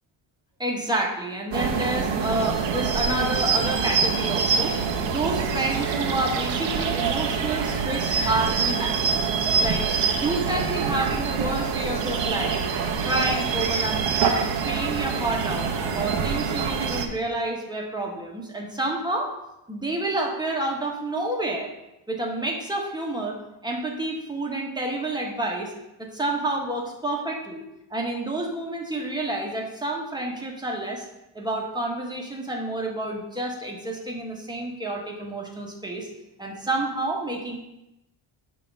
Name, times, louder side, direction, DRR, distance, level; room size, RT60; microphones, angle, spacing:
voice 1, 0.6-4.8 5.0-9.2 9.6-9.8 10.2-12.6 13.0-14.3 14.7-19.3 19.7-21.7 22.1-23.4 23.6-25.7 26.0-27.6 27.9-31.0 31.3-36.1 36.4-37.6, right 2 dB, 10° right, -1 dB, 1.4 m, -29 dB
sound 1, 1.5-17.1, right 6 dB, 65° right, 1.0 m, -25 dB
8.6 x 3.0 x 6.3 m, 0.91 s
cardioid pair, 120°, 48 cm